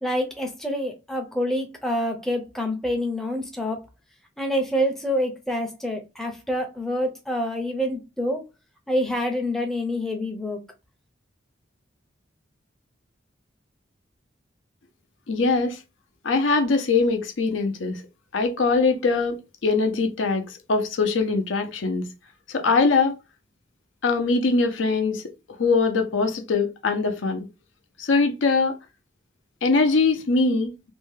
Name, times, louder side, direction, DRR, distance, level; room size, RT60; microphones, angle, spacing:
voice 1, 0.0-3.8 4.4-8.4 8.9-10.6, equal, ahead, 0.5 m, -27 dB
voice 2, 15.3-15.8 16.2-18.0 18.3-22.1 22.5-23.2 24.0-25.2 25.5-27.5 28.0-28.7 29.6-30.7, left 4 dB, 85° left, 0.6 m, -22 dB
2.7 x 2.2 x 3.1 m
head